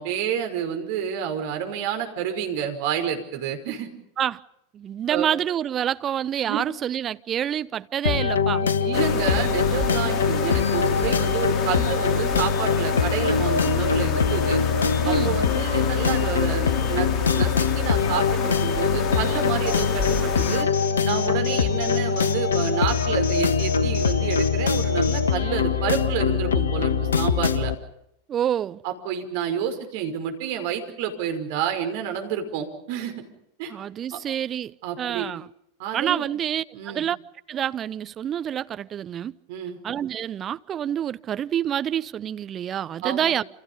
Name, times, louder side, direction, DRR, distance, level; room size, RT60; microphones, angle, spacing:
voice 1, 0.0-3.9 5.1-5.3 6.5-6.6 8.6-14.6 15.0-20.7 21.0-27.7 28.8-33.2 33.6-33.7 34.1-34.2 34.8-35.3 35.8-36.3 36.7-37.1 39.5-39.8 43.0-43.3, right 8 dB, 50° right, 5.4 m, -29 dB
voice 2, 4.7-8.6 15.0-15.4 28.3-28.8 33.7-35.5 35.9-37.2 37.5-39.3 39.8-43.4, right 10 dB, 25° right, 0.9 m, -27 dB
sound 1, 8.0-27.7, left 6 dB, 70° left, 1.5 m, -23 dB
sound 2, 8.9-20.6, left 5 dB, 35° left, 2.5 m, -31 dB
Alarm, 19.7-25.2, left 7 dB, 50° left, 5.9 m, -35 dB
29.0 x 28.0 x 5.4 m
figure-of-eight pair, 90°, 0 cm